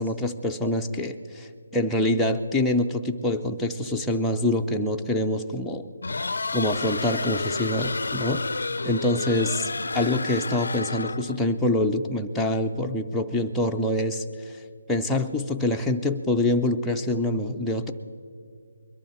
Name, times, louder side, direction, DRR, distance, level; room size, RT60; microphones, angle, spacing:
voice 1, 0.0-5.9 6.5-8.4 8.8-9.7 9.9-14.6 14.9-17.9, left 1 dB, 5° left, -1 dB, 0.4 m, -25 dB
sound 1, 6.0-11.4, left 3 dB, 75° left, 0.4 m, -30 dB
22.0 x 12.0 x 4.3 m, 2.3 s
hypercardioid pair, 165°, 0 cm